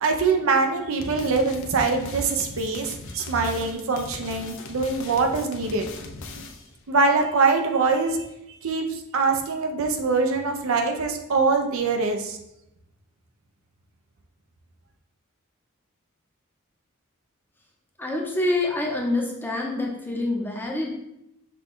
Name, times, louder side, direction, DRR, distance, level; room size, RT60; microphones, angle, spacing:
voice 1, 0.0-5.9 6.9-8.2 8.6-12.4, right 4 dB, 65° right, 4 dB, 0.6 m, -23 dB
sound 1, 1.0-6.8, left 3 dB, 60° left, 0.5 m, -39 dB
voice 2, 18.0-20.9, left 2 dB, 10° left, -1 dB, 0.7 m, -26 dB
5.9 x 2.3 x 3.7 m, 0.85 s
head